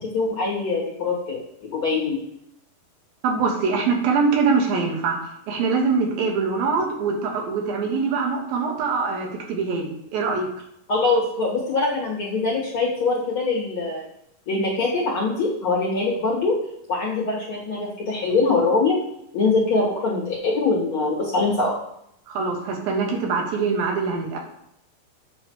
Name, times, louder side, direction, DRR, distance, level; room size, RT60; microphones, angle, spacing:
voice 1, 0.0-1.4 1.7-2.2 10.9-14.0 14.5-16.6 16.9-19.0 19.3-21.7, left 3 dB, 45° left, -6 dB, 2.2 m, -23 dB
voice 2, 3.2-5.2 5.5-10.5 22.3-24.4, right 4 dB, 80° right, 1 dB, 3.1 m, -23 dB
8.4 x 3.2 x 6.3 m, 0.74 s
omnidirectional pair, 4.1 m